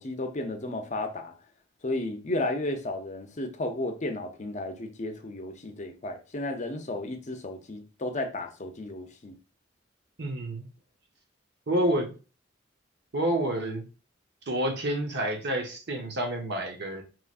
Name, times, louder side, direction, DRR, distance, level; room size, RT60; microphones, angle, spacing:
voice 1, 0.0-1.3 1.8-9.3, left 2 dB, 35° left, 0.6 m, -33 dB
voice 2, 10.2-10.7 11.7-12.1 13.1-13.8 14.5-17.0, right 1 dB, 60° right, 0.9 m, -28 dB
5.9 x 3.0 x 2.5 m
head